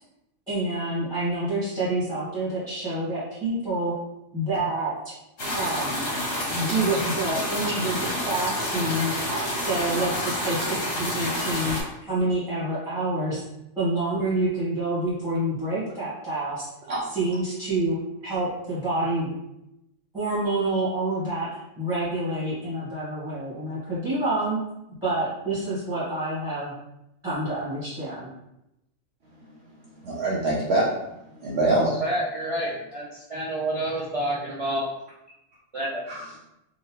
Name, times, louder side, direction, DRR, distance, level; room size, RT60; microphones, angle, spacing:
voice 1, 0.5-3.9 4.3-5.1 5.5-6.1 6.5-9.1 9.5-11.8 12.0-13.4 13.7-16.6 17.0-18.0 18.2-19.3 20.1-21.5 21.8-24.6 25.0-26.7 27.2-28.3, right 2 dB, 5° right, -10 dB, 1.3 m, -27 dB
sound 1, 5.4-11.8, left 1 dB, 70° left, 1.6 m, -28 dB
voice 2, 30.0-30.8 31.4-32.0 36.1-36.3, right 2 dB, 60° right, -6 dB, 0.9 m, -24 dB
voice 3, 31.8-34.8 35.7-36.0, right 1 dB, 40° right, -7 dB, 0.5 m, -28 dB
3.8 x 2.4 x 3.0 m, 0.87 s
omnidirectional pair, 1.3 m